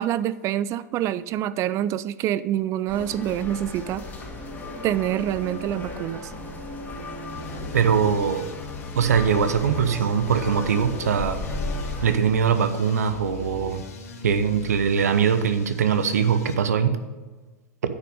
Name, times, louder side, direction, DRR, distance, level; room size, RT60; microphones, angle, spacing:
voice 1, 0.0-4.0 4.8-6.3, right 11 dB, 35° right, 17 dB, 0.4 m, -26 dB
sound 1, 2.9-12.2, left 2 dB, 20° left, 2.1 m, -35 dB
sound 2, 7.3-16.5, left 5 dB, 65° left, 1.4 m, -39 dB
voice 2, 7.7-8.5 8.9-11.4 12.0-13.8 14.2-17.0, right 7 dB, 75° right, 10 dB, 0.8 m, -22 dB
9.9 x 5.9 x 5.0 m, 1.3 s
hypercardioid pair, 100°, 9 cm